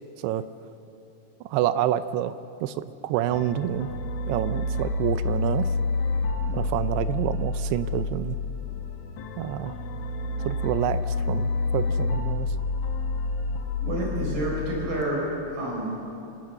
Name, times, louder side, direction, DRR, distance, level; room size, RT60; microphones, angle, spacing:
voice 1, 1.5-2.3 2.6-3.9 4.3-5.7 6.5-8.4 9.4-9.7 10.5-12.5, right 12 dB, 80° right, 13 dB, 2.4 m, -28 dB
sound 1, 3.3-15.0, left 3 dB, 80° left, 1.7 m, -29 dB
voice 2, 13.8-15.2 15.5-15.9, right 2 dB, 50° right, -2 dB, 5.8 m, -29 dB
27.0 x 18.0 x 6.6 m, 2.8 s
omnidirectional pair, 5.2 m